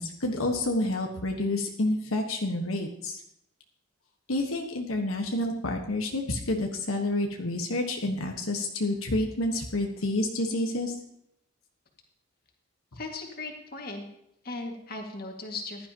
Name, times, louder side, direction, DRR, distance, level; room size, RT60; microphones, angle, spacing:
voice 1, 0.0-3.2 4.3-10.9, left 1 dB, 85° left, 2 dB, 1.4 m, -29 dB
voice 2, 12.9-14.1 14.4-15.9, left 3 dB, 45° left, 1 dB, 2.0 m, -37 dB
15.5 x 11.5 x 2.9 m, 0.75 s
head